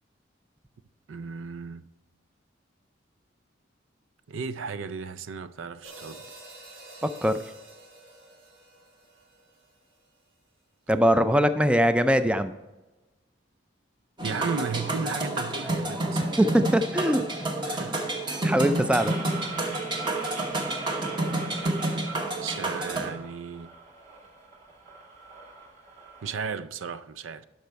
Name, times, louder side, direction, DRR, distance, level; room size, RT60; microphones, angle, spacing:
voice 1, 1.1-1.9 4.3-6.3 14.2-16.4 17.8-18.0 22.4-23.7 26.2-27.5, right 5 dB, 85° right, 0.5 m, -35 dB
sound 1, 5.8-10.2, right 2 dB, 70° right, 3.0 m, -49 dB
voice 2, 7.0-7.3 10.9-12.5 16.4-17.2 17.6-17.8 18.4-19.1, equal, 5° right, 0.3 m, -22 dB
sound 2, 14.2-23.1, right 2 dB, 25° right, 1.0 m, -29 dB
sound 3, 18.9-26.4, right 4 dB, 40° right, 2.2 m, -41 dB
12.0 x 5.5 x 4.6 m
head